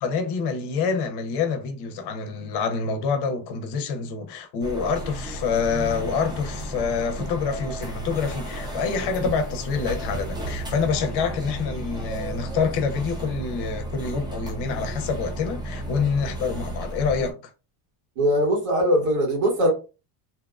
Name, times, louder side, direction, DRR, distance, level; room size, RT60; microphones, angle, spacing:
voice 1, 0.0-17.4, left 5 dB, 60° left, 0.6 m, -27 dB
sound 1, 4.6-17.3, right 1 dB, 10° right, 0.4 m, -33 dB
voice 2, 18.2-19.7, equal, 85° right, 1.5 m, -21 dB
2.8 x 2.1 x 2.4 m
cardioid pair, 150°, 47 cm